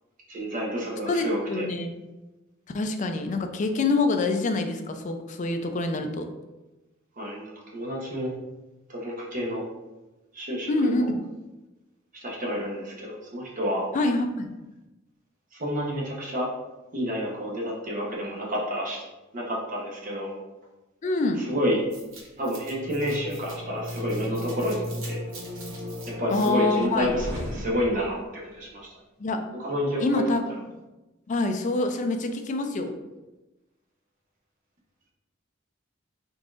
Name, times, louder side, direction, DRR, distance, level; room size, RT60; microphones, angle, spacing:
voice 1, 0.3-1.7 7.2-8.3 8.9-9.6 10.3-11.1 12.1-13.9 15.5-16.5 16.9-19.0 19.3-20.3 21.4-21.8 22.4-25.2 26.2-28.2 28.4-28.9 29.6-30.2, equal, 40° right, -3 dB, 0.8 m, -29 dB
voice 2, 1.1-1.9 2.7-6.2 10.7-11.2 13.9-14.5 21.0-21.4 26.3-27.1 29.2-29.5 30.0-30.6 31.3-33.0, left 2 dB, 40° left, 6 dB, 0.4 m, -26 dB
sound 1, 21.9-28.3, left 1 dB, 90° right, 1.0 m, -36 dB
3.9 x 3.7 x 2.4 m, 1.1 s
head